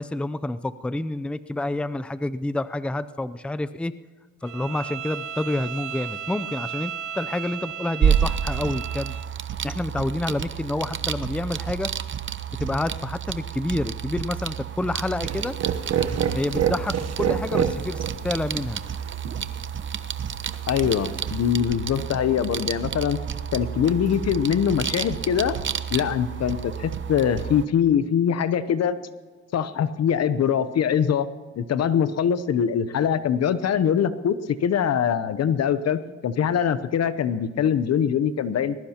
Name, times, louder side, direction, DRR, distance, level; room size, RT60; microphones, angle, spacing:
voice 1, 0.0-3.9 4.4-9.2 9.6-11.9 12.6-15.5 16.1-18.8, left 2 dB, 5° left, 13 dB, 0.5 m, -28 dB
Bowed string instrument, 4.4-9.3, right 9 dB, 85° right, 1.2 m, -35 dB
sound 1, 8.0-27.7, right 8 dB, 40° right, 0.8 m, -30 dB
sound 2, 15.2-21.5, right 8 dB, 55° right, 1.1 m, -29 dB
voice 2, 20.7-23.2 23.5-25.5 25.9-29.0 29.5-31.3 31.6-38.8, left 8 dB, 55° left, 13 dB, 0.8 m, -23 dB
20.0 x 20.0 x 2.9 m, 1.4 s
cardioid pair, 90°, 30 cm